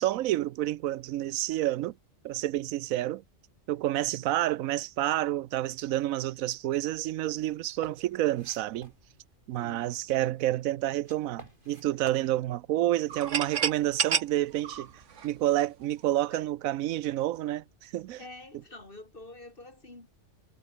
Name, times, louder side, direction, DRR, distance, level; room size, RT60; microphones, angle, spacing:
voice 1, 0.0-1.9 2.2-3.2 3.7-8.9 9.5-14.9 15.2-18.2, right 14 dB, 85° right, 1.0 m, -29 dB
sound 1, 6.8-12.3, right 1 dB, 40° right, 6.4 m, -54 dB
voice 2, 9.6-9.9 16.3-16.5 18.2-20.1, left 2 dB, 40° left, 3.8 m, -47 dB
sound 2, 13.1-15.9, right 7 dB, 65° right, 1.6 m, -30 dB
omnidirectional pair, 1.4 m